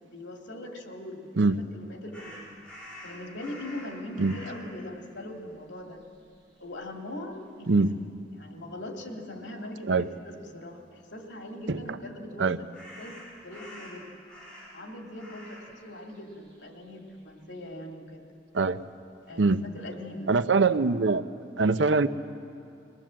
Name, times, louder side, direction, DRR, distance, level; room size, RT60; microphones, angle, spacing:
voice 1, 0.0-2.6 3.0-6.0 6.6-7.9 8.3-12.5 13.0-14.1 14.7-18.3 19.3-20.3, left 1 dB, 85° left, 2 dB, 2.4 m, -41 dB
sound 1, 2.1-4.7 5.5-5.6 6.0-6.9 12.7-14.9 15.2-15.7 16.0-17.6, left 1 dB, 5° left, 7.1 m, -47 dB
voice 2, 20.3-21.2 21.6-22.1, right 3 dB, 90° right, 12 dB, 0.7 m, -22 dB
22.0 x 18.5 x 7.6 m, 2.4 s
head